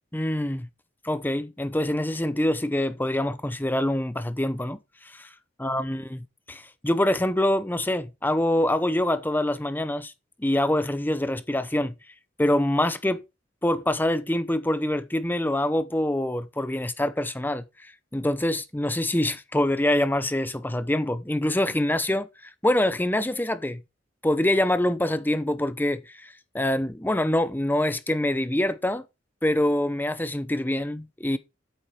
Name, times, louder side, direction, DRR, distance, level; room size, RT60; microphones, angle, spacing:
voice 1, 0.1-0.7 1.0-4.8 5.0-5.3 5.6-10.1 10.4-11.9 12.4-13.2 13.6-22.3 22.6-23.8 24.2-29.0 29.4-31.4, left 1 dB, 10° left, 0.8 m, -25 dB
9.0 x 8.3 x 4.3 m
head